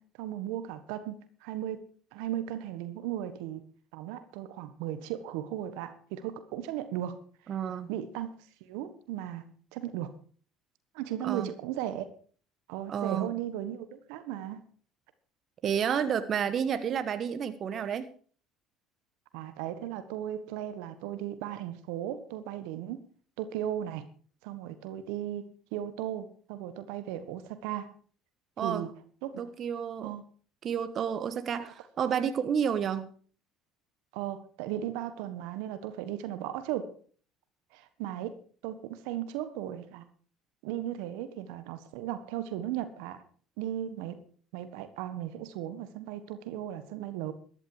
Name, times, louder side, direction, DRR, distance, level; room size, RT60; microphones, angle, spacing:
voice 1, 0.0-1.8 2.1-3.6 3.9-7.2 7.9-8.3 8.6-10.2 10.9-12.0 12.7-14.6 19.3-23.1 23.4-24.0 24.4-27.9 28.6-28.9 29.2-29.5 30.0-30.2 31.6-31.7 34.1-36.9 37.7-38.3 38.6-40.0 40.6-43.2 43.6-44.2 44.5-47.3, right 11 dB, 75° right, 1.4 m, -36 dB
voice 2, 7.5-7.9 11.2-11.5 12.9-13.3 15.6-18.1 28.6-28.9 29.4-30.1 30.6-33.1, right 8 dB, 50° right, 1.3 m, -30 dB
14.0 x 11.5 x 4.9 m
hypercardioid pair, 70°, 0 cm